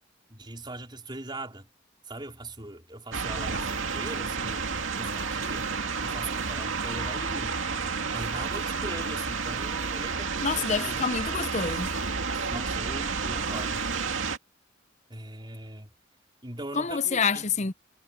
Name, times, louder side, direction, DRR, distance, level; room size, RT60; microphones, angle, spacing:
voice 1, 0.3-1.7 2.1-4.6 5.0-11.0 12.5-13.8 15.1-15.9 16.4-17.7, right 2 dB, 25° right, 4.4 m, -40 dB
sound 1, 3.1-14.4, right 5 dB, 80° right, 2.3 m, -31 dB
voice 2, 10.4-11.9 16.7-17.7, left 5 dB, 35° left, 0.7 m, -27 dB
head